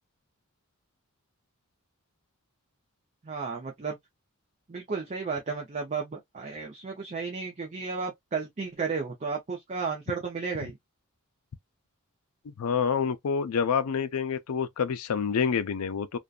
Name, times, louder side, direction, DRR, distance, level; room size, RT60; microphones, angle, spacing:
voice 1, 3.2-4.0 4.7-10.8, right 5 dB, 35° right, 0.5 m, -33 dB
voice 2, 12.4-16.2, left 6 dB, 85° left, 0.4 m, -27 dB
2.6 x 2.1 x 2.3 m
head